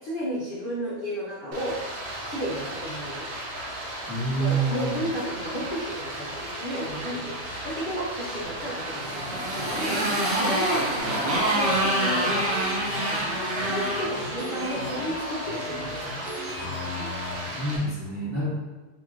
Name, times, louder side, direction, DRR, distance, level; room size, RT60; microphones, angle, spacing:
voice 1, 0.0-1.7 2.2-3.2 4.3-7.3 7.6-10.8 11.2-12.5 12.9-16.1, equal, 55° left, -8 dB, 0.6 m, -33 dB
Stream, 1.5-17.8, right 1 dB, 75° right, 1.4 m, -36 dB
voice 2, 4.1-5.1 16.5-18.5, right 2 dB, 15° right, -9 dB, 1.3 m, -29 dB
Motorcycle, 8.7-15.2, right 1 dB, 50° right, 0.7 m, -27 dB
sound 1, 11.0-17.4, left 2 dB, 5° left, 1.2 m, -37 dB
3.0 x 2.9 x 3.6 m, 1.2 s
omnidirectional pair, 1.8 m